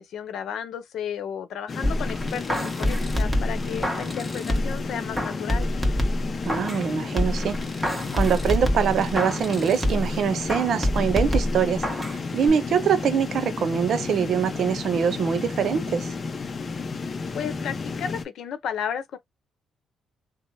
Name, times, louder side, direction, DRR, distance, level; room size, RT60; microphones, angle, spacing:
voice 1, 0.0-5.7 17.3-19.2, left 8 dB, 75° left, 0.7 m, -33 dB
sound 1, 1.7-18.2, left 4 dB, 40° left, 0.6 m, -32 dB
sound 2, 1.8-4.8 5.2-6.9 7.2-10.2 10.5-12.2 12.5-12.6, equal, 5° right, 1.0 m, -26 dB
voice 2, 6.4-11.8 12.1-16.1, right 7 dB, 65° right, 0.6 m, -24 dB
3.0 x 2.0 x 2.7 m
cardioid pair, 90°, 0 cm